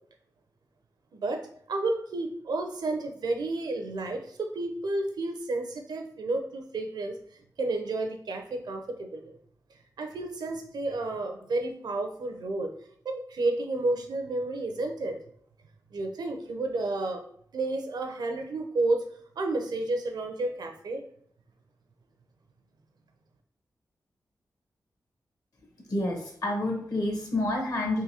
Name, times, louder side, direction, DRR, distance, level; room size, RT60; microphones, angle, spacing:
voice 1, 1.1-7.2 7.6-9.4 10.0-12.7 13.0-15.2 15.9-17.2 17.5-19.1 19.4-21.0, right 2 dB, 75° right, 5 dB, 0.6 m, -31 dB
voice 2, 25.9-28.0, left 1 dB, 60° left, 1 dB, 1.2 m, -29 dB
3.8 x 2.6 x 2.8 m, 0.63 s
cardioid pair, 55°, 7 cm